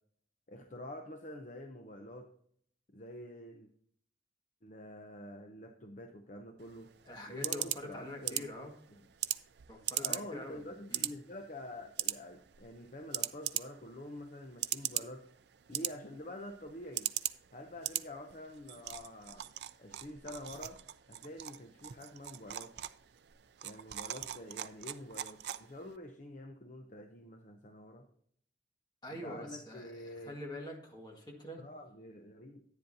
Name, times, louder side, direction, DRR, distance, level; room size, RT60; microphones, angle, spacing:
voice 1, 0.5-2.3 2.9-3.7 4.6-6.9 7.3-9.0 10.0-15.2 15.7-17.1 17.5-19.5 19.8-20.8 21.1-22.7 23.6-28.1 29.1-30.3 31.6-32.6, left 1 dB, 40° left, 5 dB, 0.7 m, -47 dB
sound 1, 6.6-26.0, right 13 dB, 60° right, 0.4 m, -41 dB
voice 2, 7.1-8.7 9.7-10.6 10.9-11.1 29.0-31.6, left 1 dB, 20° left, 0 dB, 1.9 m, -45 dB
10.5 x 9.8 x 2.7 m, 0.64 s
head